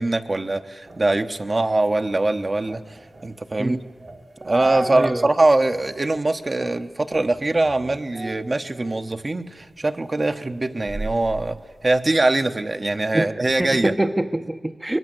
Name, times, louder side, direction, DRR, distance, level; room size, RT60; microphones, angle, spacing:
voice 1, 0.0-3.8 4.4-11.6 11.8-13.9, right 2 dB, 45° right, 7 dB, 1.0 m, -22 dB
sound 1, 0.9-5.3 5.7-5.8 6.4-6.8 7.1-9.2 9.6-12.0, right 2 dB, 65° right, 1.9 m, -36 dB
voice 2, 4.9-5.3 13.1-13.3 13.6-15.0, right 1 dB, 20° right, 7 dB, 0.7 m, -24 dB
23.0 x 20.5 x 7.8 m, 1.5 s
cardioid pair, 55°, 0 cm